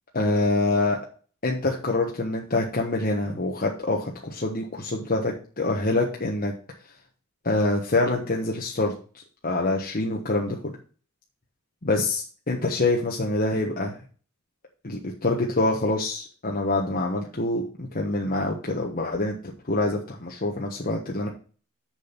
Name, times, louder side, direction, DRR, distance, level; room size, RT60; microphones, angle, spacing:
voice 1, 0.1-1.0 1.4-6.5 7.4-8.9 9.4-10.7 11.8-14.0 14.8-19.3 19.6-21.3, left 2 dB, 40° left, -1 dB, 1.2 m, -25 dB
6.9 x 6.2 x 5.9 m, 0.40 s
head